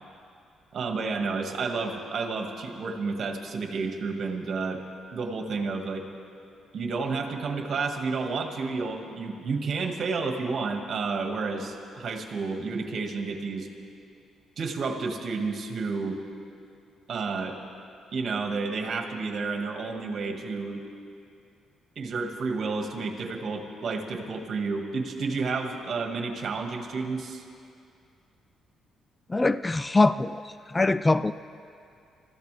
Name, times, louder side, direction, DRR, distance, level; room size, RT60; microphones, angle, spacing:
voice 1, 0.7-4.8 5.1-6.1 6.7-13.7 14.6-16.2 17.1-17.6 18.1-20.8 22.0-27.4, right 4 dB, 55° right, 3 dB, 1.9 m, -31 dB
voice 2, 29.3-31.3, left 2 dB, 20° left, 14 dB, 0.3 m, -23 dB
25.5 x 14.5 x 3.4 m, 2.5 s
cardioid pair, 90°, 0 cm